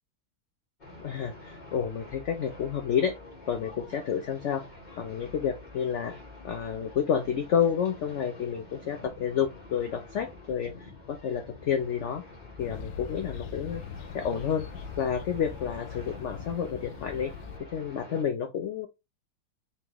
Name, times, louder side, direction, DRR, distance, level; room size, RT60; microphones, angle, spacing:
sound 1, 0.8-18.2, left 2 dB, 30° left, 1.1 m, -47 dB
voice 1, 1.0-3.2 3.5-4.6 5.0-6.1 6.4-12.2 12.6-13.8 14.1-14.7 15.0-17.3 17.7-18.9, left 8 dB, 90° left, 6 dB, 0.6 m, -30 dB
sound 2, 12.6-17.6, left 7 dB, 70° left, 1.1 m, -41 dB
4.3 x 3.6 x 2.9 m, 0.23 s
omnidirectional pair, 2.0 m